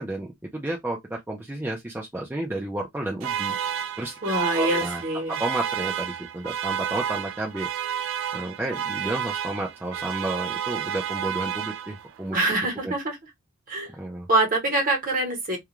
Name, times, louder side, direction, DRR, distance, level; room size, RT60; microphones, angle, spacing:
voice 1, 0.0-3.6 4.0-4.2 4.5-5.0 5.4-7.7 8.3-12.4 12.8-12.9 14.0-14.3, right 1 dB, 10° right, 0.4 m, -31 dB
sound 1, 3.2-12.2, right 9 dB, 75° right, 0.3 m, -31 dB
voice 2, 4.2-5.4 12.3-13.2 13.7-13.9 14.3-15.6, right 1 dB, 40° right, 1.0 m, -24 dB
2.4 x 2.2 x 2.9 m
head